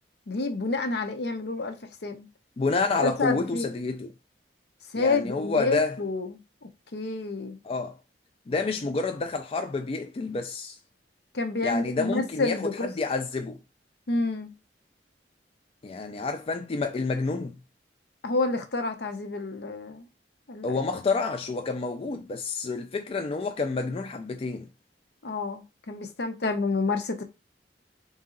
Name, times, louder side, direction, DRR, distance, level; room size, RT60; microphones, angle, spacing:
voice 1, 0.3-1.8 2.0-2.3 3.0-3.7 4.9-6.3 6.9-7.6 11.3-12.9 14.1-14.5 18.2-20.0 20.5-20.8 25.2-27.2, left 3 dB, 65° left, 0.7 m, -29 dB
voice 2, 2.6-4.1 5.0-6.0 7.6-8.0 8.5-10.8 11.6-13.6 15.8-17.6 20.6-24.7, left 3 dB, 35° left, 0.3 m, -29 dB
3.9 x 2.8 x 3.7 m
head